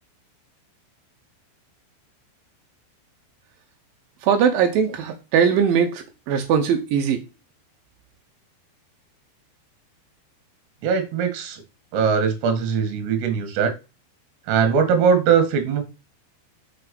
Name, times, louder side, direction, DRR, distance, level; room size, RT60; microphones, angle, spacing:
voice 1, 4.2-7.2, right 7 dB, 90° right, 2.0 m, -20 dB
voice 2, 10.8-11.6 11.9-13.7 14.5-15.8, right 6 dB, 70° right, 3.6 m, -20 dB
6.6 x 5.8 x 5.2 m
omnidirectional pair, 5.4 m